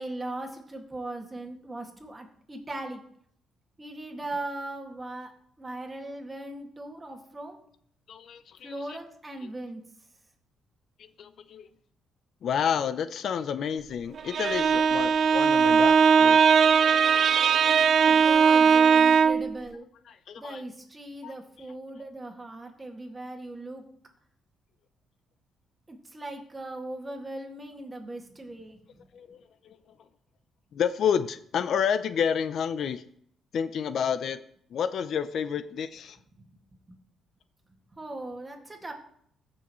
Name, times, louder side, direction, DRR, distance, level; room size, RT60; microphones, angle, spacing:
voice 1, 0.0-3.0 3.8-5.3 5.6-7.6 8.6-9.8 18.0-19.9 20.4-23.8 25.9-29.0 36.4-36.5 36.9-37.0 37.9-38.9, right 2 dB, 20° right, 2 dB, 2.0 m, -39 dB
voice 2, 8.1-9.0 11.2-11.7 12.4-16.4 17.1-17.5 18.0-18.2 20.1-20.6 21.2-21.3 29.1-29.4 30.7-33.0 33.5-34.4 34.7-36.2, left 7 dB, 65° left, 13 dB, 0.5 m, -30 dB
Bowed string instrument, 14.2-19.5, right 6 dB, 55° right, 0.5 m, -19 dB
15.0 x 6.3 x 3.1 m, 0.65 s
cardioid pair, 90°, 0 cm